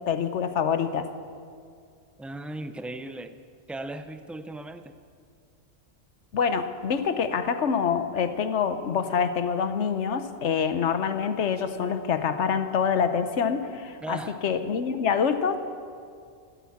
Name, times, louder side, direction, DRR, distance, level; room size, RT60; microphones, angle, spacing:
voice 1, 0.1-1.1 6.3-14.2 14.4-15.6, left 6 dB, 90° left, 10 dB, 1.2 m, -26 dB
voice 2, 2.2-3.4 3.7-5.0 14.0-14.4, right 2 dB, ahead, 9 dB, 0.3 m, -37 dB
16.0 x 12.5 x 7.2 m, 2.2 s
omnidirectional pair, 1.2 m